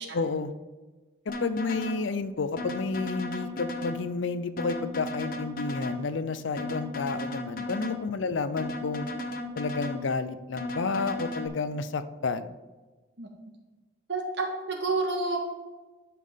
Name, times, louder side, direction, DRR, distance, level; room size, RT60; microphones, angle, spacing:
voice 1, 0.1-0.5 1.3-9.1 9.6-12.6, left 4 dB, 75° left, 12 dB, 0.5 m, -31 dB
sound 1, 1.3-2.0 2.6-4.0 4.6-6.0 6.6-8.0 8.6-10.0 10.6-11.5, left 2 dB, 45° left, 0.8 m, -35 dB
voice 2, 14.1-15.4, right 3 dB, 65° right, 1 dB, 1.6 m, -29 dB
11.0 x 5.9 x 3.7 m, 1.2 s
head